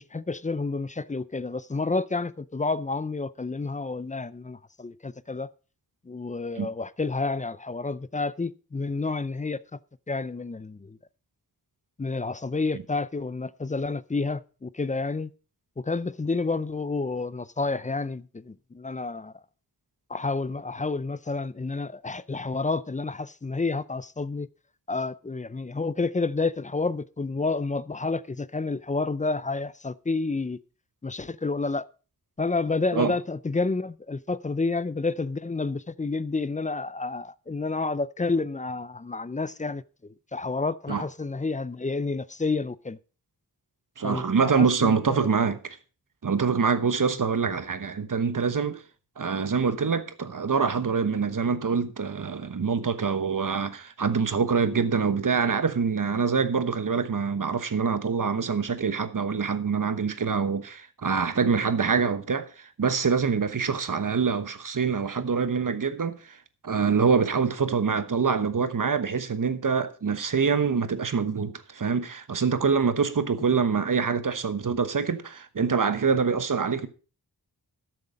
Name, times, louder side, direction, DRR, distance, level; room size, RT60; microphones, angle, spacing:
voice 1, 0.0-5.5 6.1-9.6 10.1-11.0 12.0-15.3 15.8-19.3 20.1-24.5 24.9-30.6 31.0-31.8 32.4-43.0 44.0-45.3, left 3 dB, 20° left, 0.4 m, -30 dB
voice 2, 44.0-45.8 46.2-48.8 49.2-66.4 66.6-76.9, right 5 dB, 55° right, 1.1 m, -25 dB
13.0 x 7.8 x 5.1 m
wide cardioid pair, 95°, 39 cm